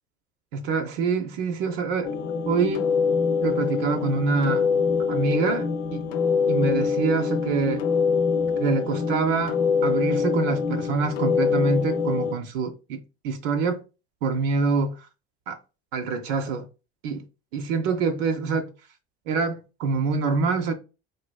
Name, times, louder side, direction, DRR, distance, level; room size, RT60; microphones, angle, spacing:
voice 1, 0.5-2.1 2.4-2.9 3.4-4.7 5.1-6.1 6.5-7.8 8.6-13.8 14.2-15.1 15.5-15.6 15.9-16.7 17.0-17.2 17.5-18.7 19.3-20.7, right 4 dB, 75° right, 0.6 m, -25 dB
sound 1, 2.0-12.3, left 5 dB, 75° left, 0.5 m, -24 dB
3.2 x 2.5 x 2.3 m
hypercardioid pair, 75°, 30 cm